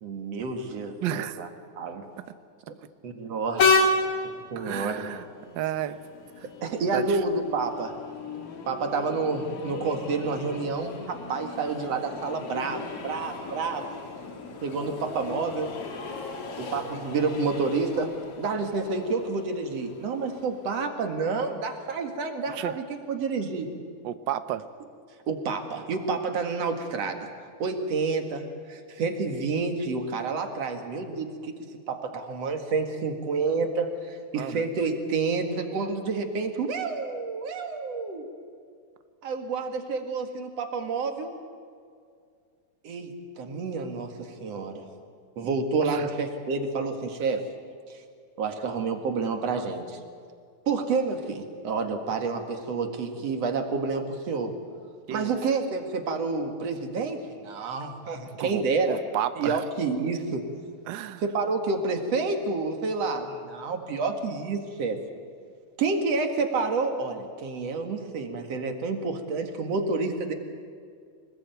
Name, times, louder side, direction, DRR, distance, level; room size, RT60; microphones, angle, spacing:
voice 1, 0.0-1.5 1.8-2.1 2.7-2.8 3.0-3.7 4.5-5.1 6.6-7.9 8.7-13.9 14.6-15.7 16.6-23.7 25.3-27.3 27.6-31.5 31.9-38.2 39.2-41.3 42.8-44.9 45.4-47.4 47.9-48.0 48.4-50.0 50.7-54.5 55.1-59.0 59.4-60.4 61.2-65.0 65.8-70.3, right 4 dB, 60° right, 5 dB, 2.9 m, -29 dB
voice 2, 1.0-1.4 4.6-5.2 5.5-6.0 6.4-6.5 6.9-7.2 22.5-22.7 24.0-24.6 34.4-34.7 45.8-46.1 49.5-49.6 55.1-55.4 58.4-59.6 60.9-61.2, right 11 dB, 85° right, 11 dB, 1.0 m, -32 dB
Train, 3.6-20.9, left 3 dB, 55° left, 2.8 m, -32 dB
25.0 x 20.5 x 9.2 m, 2.2 s
omnidirectional pair, 3.4 m